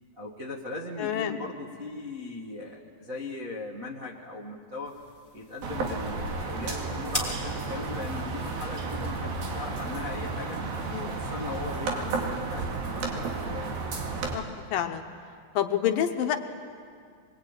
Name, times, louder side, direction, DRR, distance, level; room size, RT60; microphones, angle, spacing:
voice 1, 0.2-5.0 5.3-10.6 11.0-13.7, left 3 dB, 35° right, -5 dB, 1.5 m, -39 dB
voice 2, 1.0-1.4 10.9-11.1 14.3-15.0 15.6-16.4, left 10 dB, 75° left, 6 dB, 2.6 m, -28 dB
sound 1, 4.8-11.6, left 1 dB, 5° right, 3.3 m, -42 dB
sound 2, 5.6-14.4, right 3 dB, 75° right, 4.0 m, -32 dB
23.5 x 22.0 x 9.0 m, 2.2 s
omnidirectional pair, 4.3 m